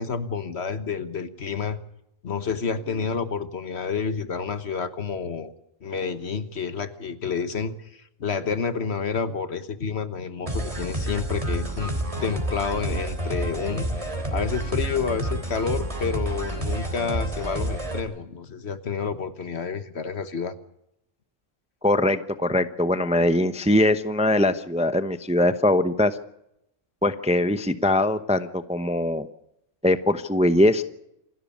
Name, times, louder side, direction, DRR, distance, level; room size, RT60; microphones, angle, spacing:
voice 1, 0.0-1.8 2.2-5.5 5.8-20.5, left 5 dB, 60° left, 11 dB, 1.5 m, -29 dB
sound 1, 10.5-18.0, right 1 dB, 25° right, 3.3 m, -29 dB
voice 2, 21.8-26.2 27.0-29.3 29.8-30.8, left 1 dB, 5° right, 11 dB, 0.7 m, -21 dB
27.5 x 12.5 x 8.5 m, 0.81 s
omnidirectional pair, 1.3 m